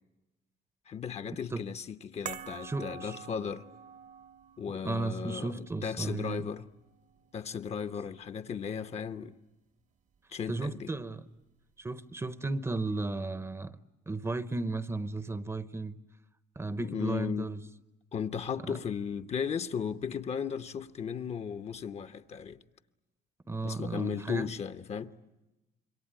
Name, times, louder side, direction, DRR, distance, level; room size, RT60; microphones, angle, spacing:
voice 1, 0.9-3.7 4.6-6.7 7.3-9.4 10.3-10.9 16.8-17.5 18.1-22.6 23.6-25.1, left 7 dB, 40° left, 0.9 m, -36 dB
sound 1, 2.3-8.7 8.9-9.1, right 7 dB, 45° right, 1.1 m, -48 dB
voice 2, 2.6-3.2 4.8-6.4 10.5-11.2 11.8-13.8 14.1-16.0 16.6-17.6 18.7-18.8 23.5-24.5, right 3 dB, 15° right, 0.9 m, -34 dB
27.0 x 23.0 x 8.9 m
cardioid pair, 110°, 17 cm